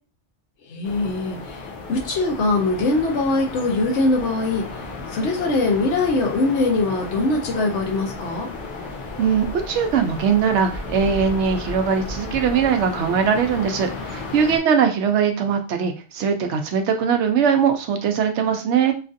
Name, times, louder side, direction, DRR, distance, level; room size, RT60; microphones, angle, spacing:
voice 1, 0.7-4.6 5.1-8.5, left 2 dB, 75° left, 0 dB, 1.0 m, -22 dB
sound 1, 0.8-14.6, left 3 dB, 55° left, 0.7 m, -34 dB
voice 2, 9.2-18.9, right 7 dB, 75° right, 5 dB, 0.9 m, -21 dB
3.0 x 2.5 x 2.5 m, 0.36 s
omnidirectional pair, 1.2 m